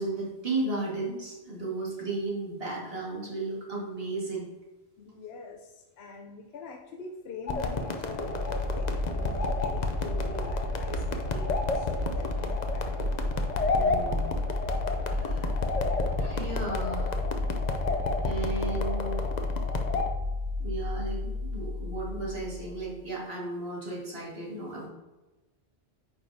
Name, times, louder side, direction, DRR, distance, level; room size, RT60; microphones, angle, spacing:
voice 1, 0.0-4.5 13.7-14.4 15.1-15.6 16.2-17.2 18.2-19.2 20.6-24.9, right 2 dB, 65° right, -4 dB, 2.2 m, -34 dB
voice 2, 5.0-13.0, left 4 dB, 75° left, 2 dB, 0.9 m, -43 dB
sound 1, 7.5-20.1, left 3 dB, 45° left, 0.7 m, -32 dB
sound 2, 8.1-22.9, left 2 dB, 90° right, 1.3 m, -32 dB
9.0 x 5.3 x 2.7 m, 1.1 s
omnidirectional pair, 1.1 m